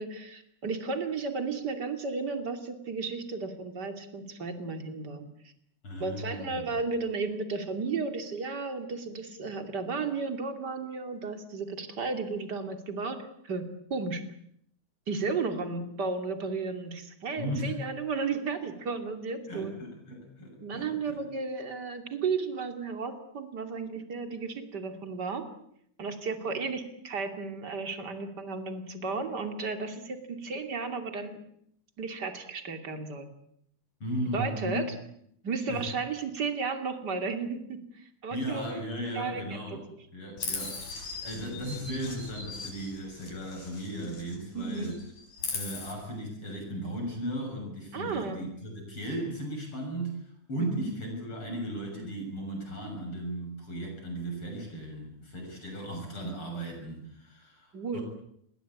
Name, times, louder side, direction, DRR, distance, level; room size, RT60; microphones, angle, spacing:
voice 1, 0.0-5.2 6.0-14.2 15.1-19.7 20.6-25.4 26.0-31.4 32.0-33.3 34.3-34.8 35.4-38.8 39.1-39.4 44.5-44.9 47.9-48.4 50.6-50.9 57.7-58.0, right 4 dB, 35° right, 7 dB, 3.0 m, -34 dB
voice 2, 5.8-6.8 17.4-17.8 19.5-21.2 34.0-34.9 35.7-35.9 38.3-45.0 45.5-58.0, right 1 dB, 40° left, 1 dB, 7.8 m, -36 dB
Chirp tweet, 40.4-44.4 44.7-45.9, left 4 dB, 65° left, 7.0 m, -39 dB
28.0 x 22.0 x 8.5 m, 0.71 s
omnidirectional pair, 3.5 m